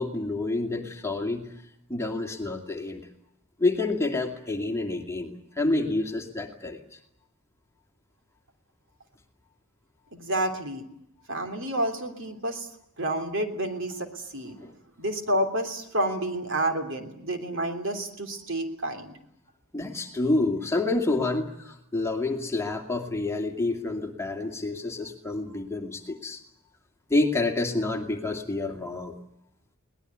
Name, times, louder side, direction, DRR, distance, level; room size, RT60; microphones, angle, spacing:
voice 1, 0.0-1.5 1.9-3.1 3.6-6.8 14.6-14.7 19.7-26.4 27.1-29.2, left 2 dB, 10° left, 3 dB, 2.5 m, -28 dB
voice 2, 10.1-10.8 11.3-12.7 13.0-14.6 15.0-19.1, right 1 dB, 60° right, 6 dB, 3.2 m, -29 dB
22.5 x 19.5 x 9.5 m, 0.74 s
head